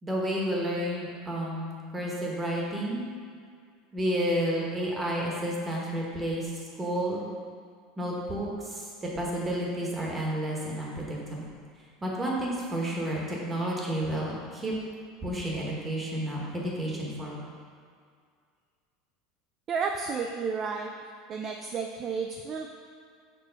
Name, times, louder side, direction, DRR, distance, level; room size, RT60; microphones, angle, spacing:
voice 1, 0.0-3.0 3.9-6.5 6.8-7.2 8.0-8.9 9.2-11.4 12.0-14.7 15.2-17.4, right 1 dB, 15° right, -3 dB, 1.1 m, -31 dB
voice 2, 19.7-20.9 21.3-22.7, right 5 dB, 30° right, 3 dB, 0.3 m, -31 dB
6.7 x 3.0 x 5.6 m, 2.2 s
cardioid pair, 160°, 0 cm